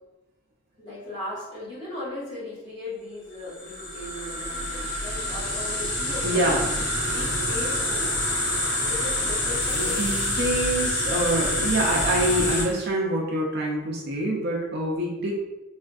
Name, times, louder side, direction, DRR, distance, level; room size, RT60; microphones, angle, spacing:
voice 1, 0.8-8.1 8.8-10.1, left 2 dB, 20° left, -10 dB, 1.2 m, -37 dB
sound 1, 3.5-12.6, left 1 dB, 55° left, 0.9 m, -27 dB
voice 2, 6.2-6.7 9.7-15.3, right 1 dB, 50° right, -1 dB, 0.4 m, -26 dB
sound 2, 7.9-12.9, right 1 dB, 5° right, 0.9 m, -45 dB
3.4 x 2.4 x 2.3 m, 1.0 s
head